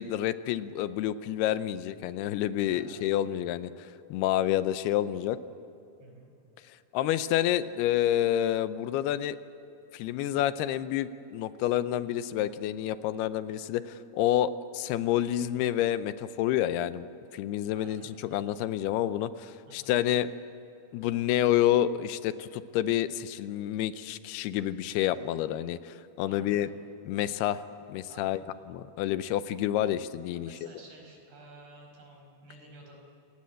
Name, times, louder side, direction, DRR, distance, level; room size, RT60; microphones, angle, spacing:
voice 1, 0.0-5.4 6.9-9.4 9.9-20.3 20.9-26.7 27.1-27.6 27.9-28.4 28.7-30.7, left 12 dB, 90° left, 13 dB, 2.7 m, -29 dB
voice 2, 2.7-3.1 6.0-6.3 17.7-18.6 19.7-19.9 26.3-26.7 28.1-28.5 30.3-33.0, right 1 dB, 80° right, 1 dB, 7.1 m, -52 dB
27.0 x 18.0 x 7.8 m, 2.9 s
omnidirectional pair, 4.5 m